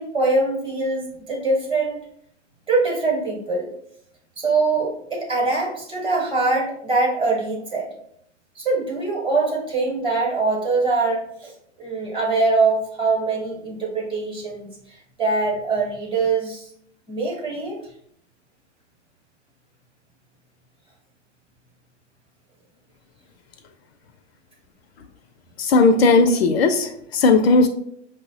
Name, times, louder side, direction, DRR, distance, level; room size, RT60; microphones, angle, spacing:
voice 1, 0.0-2.0 2.7-3.7 4.4-7.9 8.5-11.5 11.8-16.7 17.1-17.8, right 3 dB, 15° right, -1 dB, 0.9 m, -23 dB
voice 2, 25.7-27.7, left 3 dB, 60° left, 8 dB, 0.5 m, -16 dB
5.3 x 2.0 x 2.6 m, 0.70 s
hypercardioid pair, 120°, 35 cm